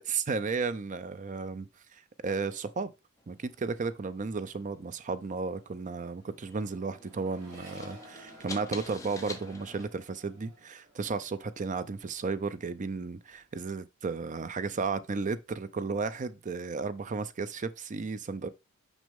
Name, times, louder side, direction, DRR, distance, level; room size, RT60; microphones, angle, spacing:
voice 1, 0.0-1.7 2.2-2.9 3.3-18.5, right 4 dB, 35° right, 0.5 m, -34 dB
sound 1, 3.2-9.9, left 3 dB, 15° left, 0.9 m, -48 dB
Accelerating revving vroom, 5.0-12.5 12.8-13.5, right 1 dB, 80° right, 2.5 m, -55 dB
6.2 x 5.2 x 3.5 m
head